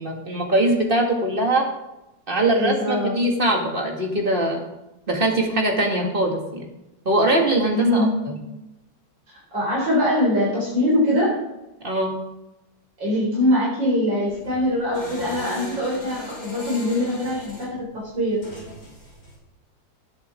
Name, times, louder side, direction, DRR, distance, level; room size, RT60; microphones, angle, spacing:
voice 1, 0.0-1.7 2.3-4.7 5.1-6.6 7.1-8.1 11.8-12.2, right 1 dB, 30° right, 1 dB, 2.3 m, -21 dB
voice 2, 2.5-3.1 7.7-8.1 9.3-11.4 13.0-18.6, left 1 dB, 85° right, -5 dB, 5.0 m, -22 dB
sound 1, 14.3-19.4, equal, 45° left, 5.8 m, -39 dB
18.5 x 8.0 x 3.7 m, 0.95 s
omnidirectional pair, 2.0 m